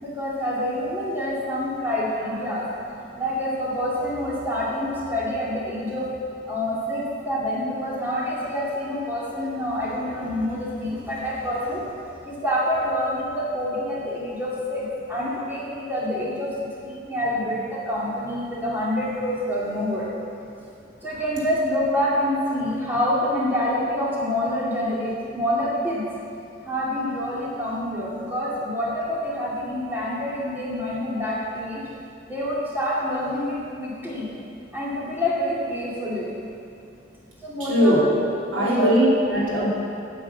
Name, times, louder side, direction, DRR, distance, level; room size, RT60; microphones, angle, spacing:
voice 1, 0.0-2.7 3.2-6.1 6.4-11.8 12.2-20.1 21.0-26.0 26.6-31.8 32.3-34.3 34.7-36.3 37.4-38.0 38.5-38.9, equal, 10° right, -7 dB, 2.4 m, -27 dB
voice 2, 37.6-38.0 38.5-39.7, equal, 75° right, -7 dB, 3.1 m, -20 dB
8.9 x 8.3 x 8.1 m, 2.5 s
head